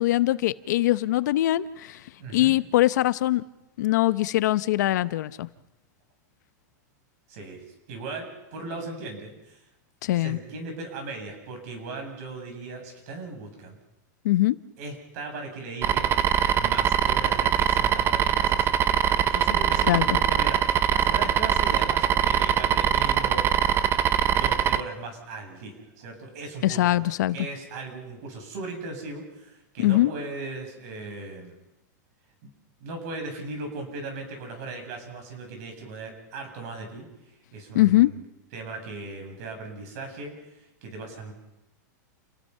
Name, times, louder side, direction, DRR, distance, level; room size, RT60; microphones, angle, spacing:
voice 1, 0.0-2.0 2.3-3.4 3.8-5.5 10.0-10.4 14.2-14.6 19.9-20.2 26.6-27.4 29.8-30.1 37.7-38.1, left 15 dB, 70° left, 15 dB, 0.8 m, -22 dB
voice 2, 2.2-2.5 7.3-9.6 10.1-13.8 14.8-19.0 19.3-23.5 24.3-31.6 32.4-32.5 32.8-38.2 38.5-41.3, right 3 dB, 60° right, 3 dB, 8.0 m, -38 dB
sound 1, 15.8-24.8, right 9 dB, 25° right, 0.7 m, -22 dB
29.5 x 18.5 x 5.6 m, 0.93 s
supercardioid pair, 150°, 10 cm